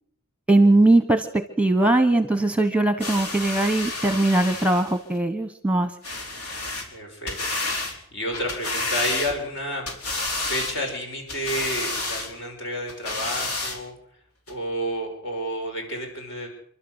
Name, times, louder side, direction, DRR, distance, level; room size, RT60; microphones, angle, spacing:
voice 1, 0.5-1.3 1.6-5.9, right 2 dB, 5° right, 10 dB, 1.1 m, -20 dB
sound 1, 3.0-5.0 6.0-6.9 7.3-7.9 8.3-9.5 9.9-10.8 11.3-12.3 12.9-13.8 14.5-14.6, left 2 dB, 80° left, 4.7 m, -30 dB
voice 2, 6.9-9.8 10.3-13.9 14.5-16.5, equal, 60° left, 2 dB, 6.1 m, -31 dB
29.0 x 12.0 x 8.1 m, 0.68 s
head